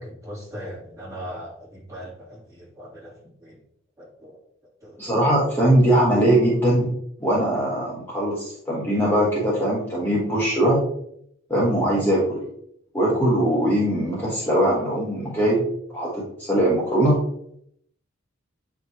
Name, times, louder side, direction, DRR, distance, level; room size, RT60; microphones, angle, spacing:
voice 1, 0.0-3.6 4.0-4.4 4.8-5.1, equal, 15° right, -6 dB, 2.5 m, -39 dB
voice 2, 5.0-6.9 7.2-10.8 11.5-12.4 12.9-15.6 15.9-17.2, right 1 dB, 10° left, -6 dB, 1.2 m, -21 dB
8.7 x 4.6 x 2.8 m, 0.70 s
head